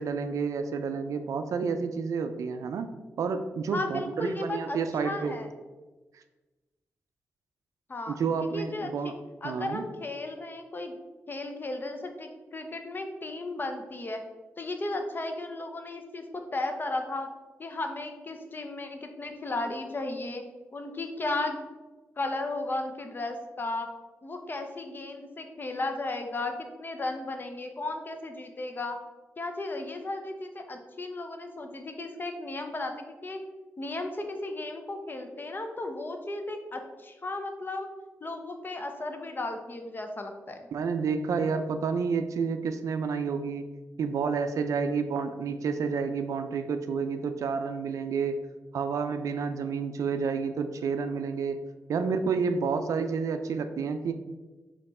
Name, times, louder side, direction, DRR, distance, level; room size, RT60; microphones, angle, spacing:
voice 1, 0.0-2.9 3.2-5.4 8.1-9.1 9.4-9.8 40.7-43.7 44.0-48.4 48.7-51.6 51.9-54.1, right 5 dB, 75° right, 9 dB, 0.4 m, -30 dB
voice 2, 3.7-4.8 5.0-5.5 7.9-8.2 8.5-9.1 9.4-11.0 11.3-14.2 14.6-17.3 17.6-20.4 20.7-21.6 22.2-23.9 24.2-29.0 29.4-33.4 33.8-37.9 38.2-40.7, left 2 dB, 40° left, 5 dB, 0.7 m, -35 dB
4.2 x 2.9 x 4.1 m, 1.2 s
cardioid pair, 60°, 6 cm